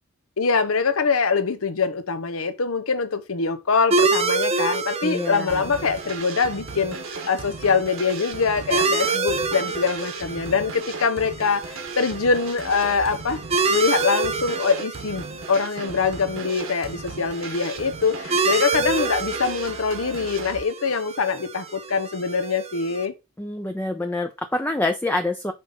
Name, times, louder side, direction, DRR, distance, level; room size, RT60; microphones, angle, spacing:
voice 1, 0.4-7.0 7.3-13.4 13.7-23.1, left 5 dB, 80° left, 0.8 m, -24 dB
sound 1, 3.9-23.1, right 4 dB, 30° right, 0.8 m, -28 dB
voice 2, 5.0-5.7 23.4-25.5, left 2 dB, 10° left, 0.5 m, -26 dB
sound 2, 5.5-20.6, right 4 dB, 65° right, 1.3 m, -37 dB
5.4 x 3.5 x 5.4 m
head